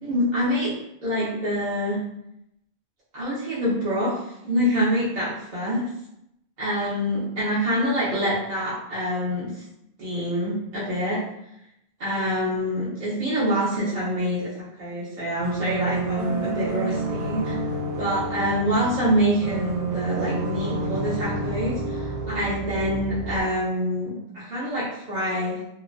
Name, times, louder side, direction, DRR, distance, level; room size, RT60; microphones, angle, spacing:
voice 1, 0.0-0.7 1.0-2.0 3.1-4.2 4.4-5.8 6.6-9.6 10.0-11.2 12.0-17.5 18.0-25.6, equal, 50° right, -9 dB, 0.8 m, -26 dB
sound 1, 15.4-23.4, right 3 dB, 90° right, 0.8 m, -29 dB
2.8 x 2.1 x 2.5 m, 0.80 s
omnidirectional pair, 1.0 m